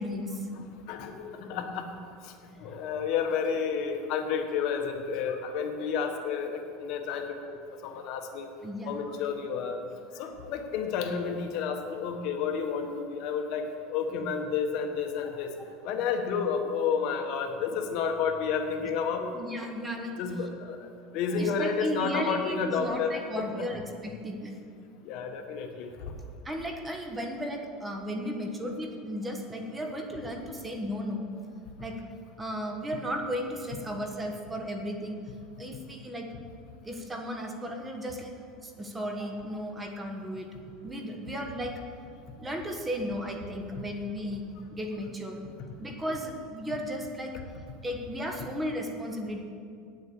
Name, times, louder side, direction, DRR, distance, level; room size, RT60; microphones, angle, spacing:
voice 1, 0.0-0.5 8.6-9.1 17.1-17.3 19.3-20.2 21.4-24.5 26.4-31.3 31.8-32.0 32.4-35.2 35.6-36.3 36.8-38.3 38.6-40.5 40.8-41.8 42.4-45.4 45.8-47.3 47.8-49.4, equal, 15° right, 3 dB, 1.3 m, -35 dB
voice 2, 0.5-1.9 2.2-2.3 2.6-7.6 7.8-8.5 8.9-9.8 10.1-15.5 15.8-19.3 20.2-20.8 21.1-23.7 25.0-25.9 43.7-43.8, left 6 dB, 55° left, 5 dB, 1.3 m, -31 dB
9.3 x 7.9 x 8.6 m, 2.3 s
supercardioid pair, 135°, 0 cm